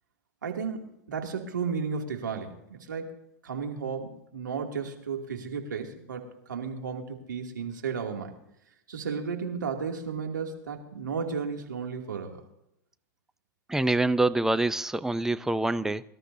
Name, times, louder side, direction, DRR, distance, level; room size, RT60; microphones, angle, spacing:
voice 1, 0.4-3.2 3.4-8.3 8.9-12.4, right 5 dB, 85° right, 2 dB, 2.6 m, -34 dB
voice 2, 13.7-16.0, right 2 dB, 5° right, 13 dB, 0.6 m, -25 dB
23.5 x 13.0 x 2.7 m, 0.79 s
hypercardioid pair, 105°, 10 cm